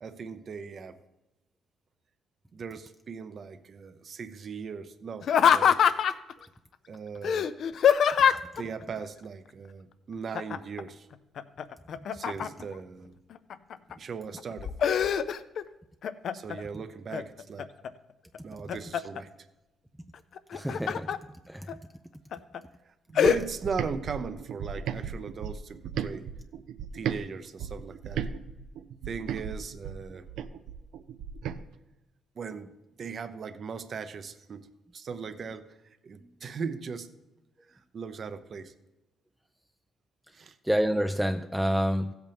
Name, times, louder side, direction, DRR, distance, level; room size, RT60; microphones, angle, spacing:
voice 1, 0.0-1.0 2.5-5.8 6.9-7.5 8.6-11.1 12.1-13.2 14.0-14.7 16.3-17.7 18.4-19.3 22.8-26.3 26.9-28.2 29.1-30.3 32.4-32.7 33.0-34.7 34.9-37.1 37.7-38.7 40.3-40.6, right 5 dB, 50° right, 11 dB, 0.7 m, -38 dB
Laughter, 5.2-6.3 7.2-8.6 10.3-10.8 11.1-12.7 13.3-13.9 14.4-15.6 16.0-16.6 17.1-17.9 18.3-19.2 20.4-21.2 21.7-21.8 22.3-22.6 23.2-23.4, left 8 dB, 65° left, 0.4 m, -24 dB
voice 2, 20.5-21.1 21.5-21.7 40.7-42.1, equal, 5° right, 7 dB, 0.4 m, -27 dB
sound 1, 23.2-27.2 27.6-31.6, right 8 dB, 80° right, 0.5 m, -36 dB
15.0 x 8.1 x 3.5 m, 1.0 s
cardioid pair, 90°, 0 cm